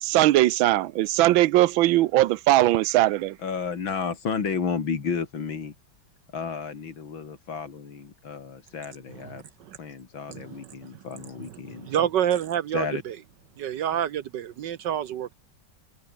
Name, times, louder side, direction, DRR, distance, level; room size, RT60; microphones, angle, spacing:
voice 1, 0.0-3.4, right 15 dB, 90° right, 1.5 m, -20 dB
voice 2, 3.4-5.7 6.3-9.4 9.8-12.1 12.7-13.0, left 6 dB, 80° left, 3.3 m, -32 dB
voice 3, 10.3-11.0 11.4-13.2 13.6-15.3, right 10 dB, 65° right, 1.4 m, -28 dB
omnidirectional pair, 2.1 m